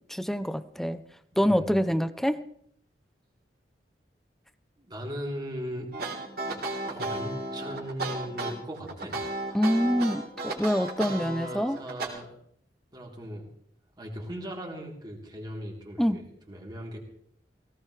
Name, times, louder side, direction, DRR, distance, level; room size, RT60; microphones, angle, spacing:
voice 1, 0.1-1.0 1.4-2.4 9.5-11.8 16.0-16.2, equal, ahead, 13 dB, 0.6 m, -26 dB
voice 2, 1.3-1.7 4.8-5.9 6.8-9.2 11.0-12.3 12.9-13.5 14.0-17.0, equal, 25° right, -1 dB, 3.6 m, -38 dB
sound 1, 5.9-12.1, right 2 dB, 65° right, 3.6 m, -33 dB
18.5 x 18.0 x 3.3 m, 0.67 s
head